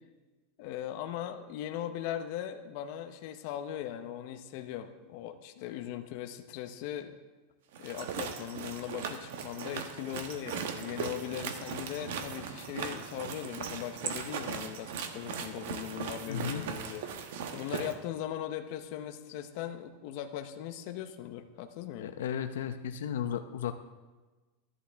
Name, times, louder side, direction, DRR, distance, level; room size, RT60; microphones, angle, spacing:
voice 1, 0.6-7.2 7.8-17.0 17.5-22.1, left 11 dB, 45° left, 7 dB, 0.7 m, -39 dB
sound 1, 7.7-17.9, right 7 dB, 65° right, 1.0 m, -39 dB
voice 2, 16.3-16.6 22.0-23.7, left 9 dB, 90° left, 9 dB, 0.6 m, -35 dB
13.0 x 11.0 x 3.4 m, 1.3 s
supercardioid pair, 170°, 0 cm